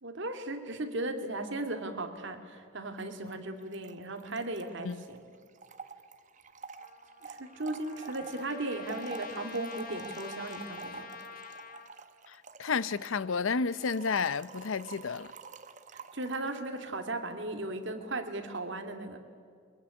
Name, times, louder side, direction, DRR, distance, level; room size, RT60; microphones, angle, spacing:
voice 1, 0.0-5.3 7.2-11.1 15.9-19.2, right 2 dB, 60° right, 2.4 m, -37 dB
Trickle dribble / Fill (with liquid), 3.0-3.1 3.3-3.4 3.6-16.7, right 4 dB, 40° right, 1.0 m, -48 dB
Trumpet, 6.8-11.9, left 6 dB, 45° left, 1.6 m, -47 dB
voice 2, 12.3-15.3, left 5 dB, 70° left, 0.6 m, -31 dB
22.5 x 22.0 x 9.9 m
head